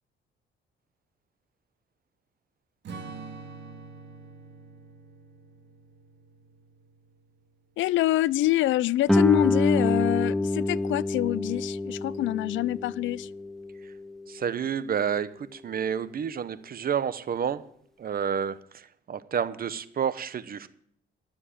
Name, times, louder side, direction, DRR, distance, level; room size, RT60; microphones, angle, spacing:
Strum, 2.8-7.5, right 4 dB, 65° right, 2.1 m, -45 dB
voice 1, 7.8-13.3, left 15 dB, 75° left, 0.4 m, -26 dB
Guitar, 9.1-14.4, left 2 dB, ahead, 0.5 m, -27 dB
voice 2, 14.3-17.6 18.0-20.7, right 8 dB, 50° right, 0.9 m, -30 dB
13.0 x 7.4 x 8.5 m
cardioid pair, 90°, 20 cm